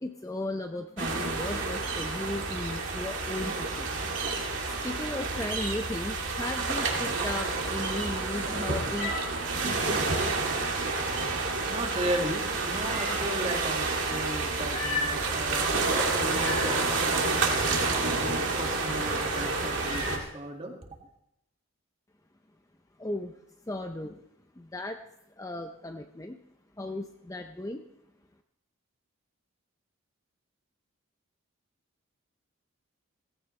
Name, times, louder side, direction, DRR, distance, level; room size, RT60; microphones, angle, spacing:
voice 1, 0.0-3.9 4.3-9.1 9.6-10.1 23.0-23.3 23.7-24.2 24.6-25.0 25.4-26.4 26.8-27.9, left 1 dB, 15° left, 5 dB, 0.5 m, -36 dB
sound 1, 1.0-20.2, right 3 dB, 55° right, 2.3 m, -29 dB
Meow, 8.2-20.3, left 3 dB, 90° left, 6.1 m, -41 dB
voice 2, 11.0-20.8, right 1 dB, 25° right, 2 dB, 2.0 m, -36 dB
17.5 x 15.5 x 3.2 m, 0.81 s
head